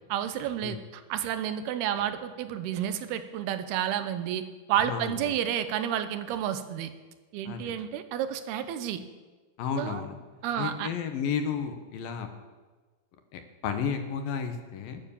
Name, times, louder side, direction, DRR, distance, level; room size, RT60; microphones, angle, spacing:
voice 1, 0.1-4.4 4.7-6.9 7.3-9.0 9.8-10.0 10.4-10.9, right 10 dB, 85° right, 10 dB, 2.9 m, -30 dB
voice 2, 9.6-10.1 10.6-12.3 13.3-15.0, left 6 dB, 70° left, 6 dB, 2.9 m, -32 dB
20.0 x 9.6 x 7.2 m, 1.3 s
omnidirectional pair, 4.6 m